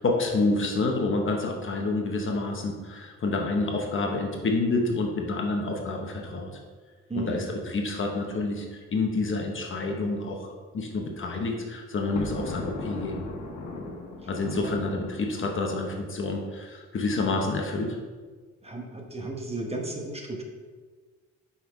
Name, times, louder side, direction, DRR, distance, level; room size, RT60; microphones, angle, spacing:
voice 1, 0.0-6.5 7.1-13.2 14.3-18.0, left 3 dB, 40° left, 2 dB, 1.0 m, -28 dB
voice 2, 7.1-7.5 14.2-14.7 18.6-20.4, right 2 dB, 20° right, 1 dB, 1.1 m, -34 dB
Thunder, 11.9-16.1, left 2 dB, 80° left, 1.2 m, -38 dB
5.5 x 4.3 x 4.8 m, 1.5 s
cardioid pair, 90°, 30 cm